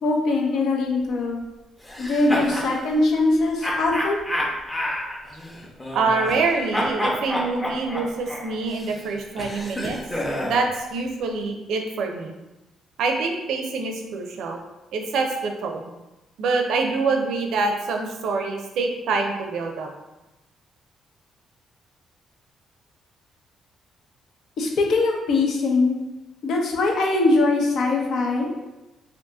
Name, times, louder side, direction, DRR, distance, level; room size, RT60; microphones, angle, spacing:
voice 1, 0.0-1.4 2.0-4.2 24.6-26.0 26.4-28.5, left 2 dB, 70° left, 0 dB, 0.7 m, -21 dB
sound 1, 1.8-2.7 3.6-6.5 6.7-10.7, left 1 dB, 15° left, 0.7 m, -29 dB
voice 2, 5.9-10.0 10.4-12.3 13.0-14.6 14.9-15.9 16.4-19.9, right 4 dB, 80° right, 3 dB, 0.5 m, -25 dB
2.7 x 2.5 x 3.5 m, 1.0 s
cardioid pair, 90°, 0 cm